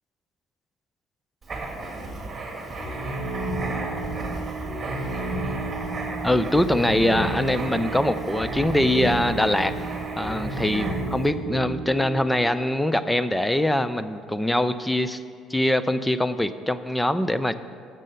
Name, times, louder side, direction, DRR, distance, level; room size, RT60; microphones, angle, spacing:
Writing, 1.4-11.2, right 2 dB, 30° right, 2.0 m, -35 dB
sound 1, 2.8-12.0, right 2 dB, 40° left, 2.9 m, -32 dB
voice 1, 6.2-9.8 10.2-15.2 15.5-17.5, left 1 dB, 5° left, 12 dB, 0.5 m, -23 dB
7.5 x 6.6 x 7.8 m, 2.2 s
supercardioid pair, 90°, 0 cm